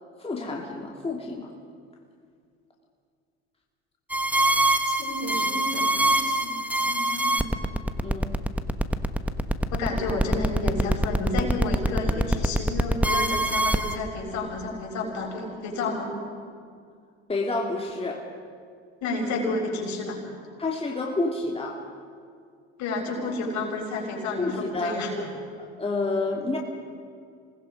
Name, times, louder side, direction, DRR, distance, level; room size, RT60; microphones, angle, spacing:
voice 1, 0.2-1.5 8.0-8.3 17.3-18.3 20.6-21.8 24.4-26.6, left 2 dB, 20° left, -1 dB, 2.6 m, -29 dB
sound 1, 4.1-13.9, right 1 dB, 5° right, 1.2 m, -23 dB
voice 2, 4.9-7.5 9.7-16.1 19.0-20.2 22.8-25.1, left 2 dB, 60° left, -1 dB, 6.5 m, -31 dB
27.0 x 19.5 x 5.3 m, 2.2 s
hypercardioid pair, 75°, 32 cm